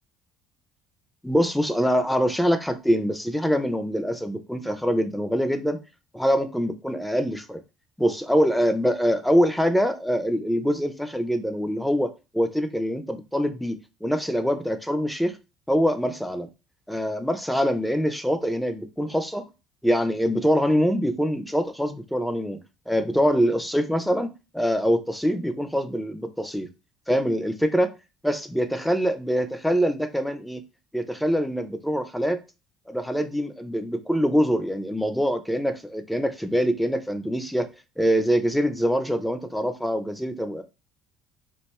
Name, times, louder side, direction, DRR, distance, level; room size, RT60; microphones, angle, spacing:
voice 1, 1.2-5.8 6.1-7.6 8.0-15.4 15.7-16.5 16.9-19.5 19.8-22.6 22.9-24.3 24.5-26.7 27.1-27.9 28.2-30.6 30.9-32.4 32.9-37.7 38.0-40.6, equal, ahead, 0.5 m, -24 dB
2.6 x 2.3 x 4.1 m
cardioid pair, 100°, 0 cm